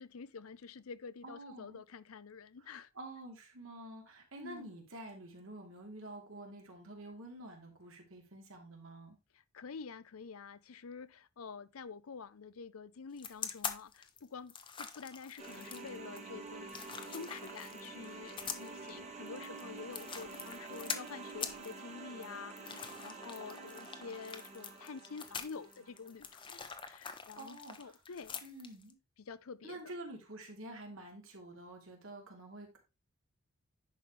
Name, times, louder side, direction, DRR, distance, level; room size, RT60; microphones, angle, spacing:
voice 1, 0.0-2.9 4.4-4.7 9.5-16.7 17.1-28.4 29.2-29.9, left 5 dB, 90° left, 0.6 m, -48 dB
voice 2, 1.2-1.8 2.6-2.7 2.9-9.2 27.4-28.0 28.4-29.0 29.6-32.8, right 1 dB, 70° right, 2.8 m, -48 dB
sound 1, 13.2-28.9, left 6 dB, 25° left, 0.8 m, -44 dB
sound 2, 15.4-26.2, right 3 dB, 30° right, 1.3 m, -48 dB
10.5 x 5.2 x 3.3 m
head